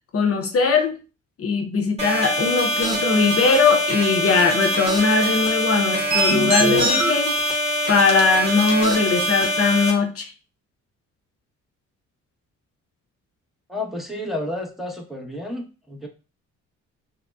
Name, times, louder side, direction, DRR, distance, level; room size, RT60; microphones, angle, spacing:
voice 1, 0.1-1.0 1.4-7.3 7.9-10.3, left 4 dB, 50° left, 3 dB, 0.7 m, -20 dB
sound 1, 2.0-9.9, equal, 20° right, 1.7 m, -24 dB
sound 2, 2.8-3.2 3.5-3.6 4.8-5.3 5.5-5.6 6.1-7.1 7.5-7.6 8.1-8.2 8.5-8.7 9.1-9.2, right 1 dB, 70° right, 1.0 m, -23 dB
voice 2, 13.7-16.1, left 1 dB, ahead, -1 dB, 0.9 m, -31 dB
6.3 x 2.2 x 2.3 m, 0.34 s
cardioid pair, 90°, 30 cm